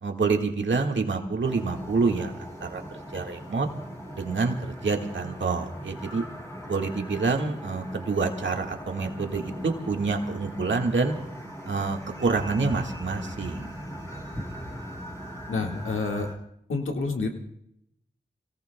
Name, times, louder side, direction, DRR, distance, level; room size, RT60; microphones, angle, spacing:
voice 1, 0.0-2.3 2.6-3.7 4.1-6.2 6.7-11.2 11.6-13.7, right 4 dB, 70° right, 2 dB, 1.7 m, -27 dB
sound 1, 1.4-16.3, equal, 15° left, 8.0 m, -40 dB
voice 2, 15.5-16.3 16.7-17.3, left 3 dB, 85° left, 2 dB, 1.8 m, -28 dB
30.0 x 17.5 x 2.2 m, 0.76 s
wide cardioid pair, 65°, 20 cm